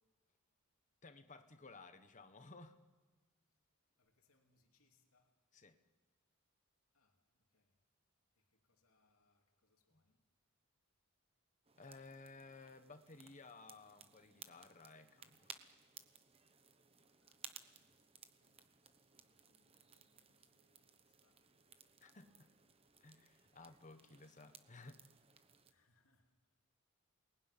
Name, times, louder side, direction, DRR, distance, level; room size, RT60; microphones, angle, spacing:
voice 1, 1.0-2.8 5.5-5.8 9.9-10.0 11.8-15.6 22.0-22.5 23.0-25.0, left 3 dB, 35° left, 1.3 m, -57 dB
voice 2, 4.0-5.4 6.9-7.8 8.3-10.2 17.2-18.0 18.2-18.7 19.1-22.1 25.7-26.4, left 3 dB, 70° left, 3.0 m, -80 dB
sound 1, 11.6-25.7, right 6 dB, 25° right, 1.1 m, -60 dB
28.0 x 20.0 x 9.9 m
head